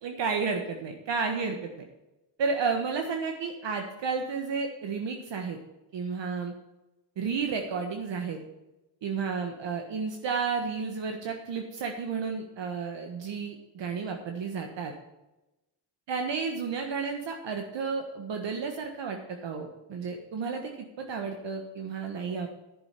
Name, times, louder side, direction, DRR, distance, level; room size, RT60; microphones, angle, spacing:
voice 1, 0.0-1.9 2.4-5.6 5.9-6.5 7.2-8.4 9.0-14.9 16.1-22.5, right 5 dB, 60° right, 3 dB, 1.4 m, -32 dB
10.5 x 6.2 x 7.3 m, 0.98 s
cardioid pair, 75°, 48 cm